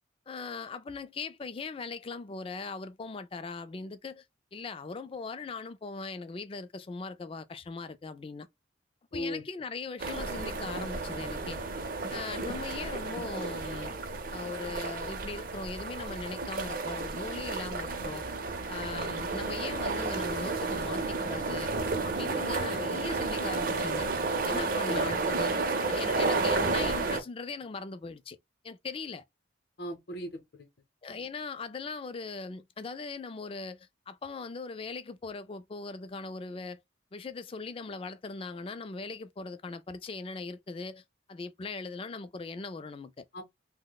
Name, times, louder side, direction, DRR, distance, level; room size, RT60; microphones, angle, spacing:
voice 1, 0.3-4.2 4.5-8.5 9.1-11.6 12.1-13.9 14.3-18.2 18.7-21.7 22.0-24.1 24.4-25.5 25.8-28.4 28.6-29.2 31.0-36.8 37.1-41.0 41.3-43.2, left 4 dB, 30° left, 0.3 m, -40 dB
voice 2, 9.1-9.4 24.5-25.1 29.8-30.7 43.3-43.4, left 1 dB, 55° left, 0.7 m, -38 dB
sound 1, 10.0-27.2, right 3 dB, 45° right, 0.6 m, -32 dB
2.9 x 2.1 x 3.9 m
head